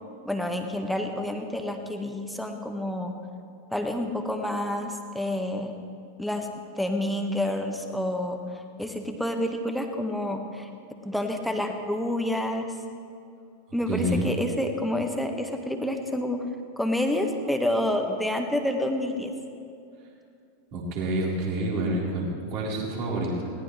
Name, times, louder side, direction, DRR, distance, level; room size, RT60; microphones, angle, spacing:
voice 1, 0.2-3.2 3.7-5.7 6.2-6.5 6.8-8.4 8.8-10.7 11.0-12.7 13.7-16.4 16.8-19.3, left 1 dB, ahead, 4 dB, 1.5 m, -28 dB
voice 2, 13.9-14.3 20.7-23.5, right 1 dB, 45° right, -3 dB, 3.9 m, -28 dB
21.0 x 18.0 x 3.3 m, 2.5 s
figure-of-eight pair, 90°, 0 cm